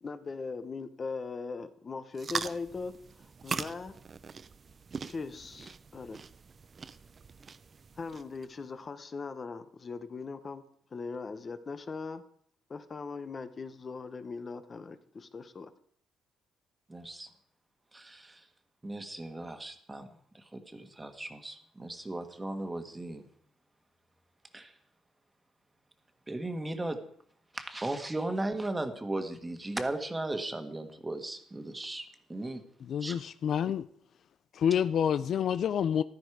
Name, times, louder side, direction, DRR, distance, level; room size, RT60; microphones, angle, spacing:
voice 1, 0.0-3.0 3.4-3.9 5.1-6.2 8.0-10.6 10.9-12.2 12.7-15.7, left 4 dB, 30° left, 1.0 m, -39 dB
sound 1, 2.1-8.5, right 5 dB, 30° right, 0.6 m, -41 dB
voice 2, 16.9-17.3 17.9-18.4 18.8-20.1 20.3-23.2 24.5-24.7 26.3-27.0 27.5-32.6 33.0-33.2, right 2 dB, 15° right, 1.6 m, -36 dB
voice 3, 32.8-33.9 34.5-36.0, left 8 dB, 55° left, 0.5 m, -28 dB
15.0 x 13.0 x 4.8 m
cardioid pair, 135°, 0 cm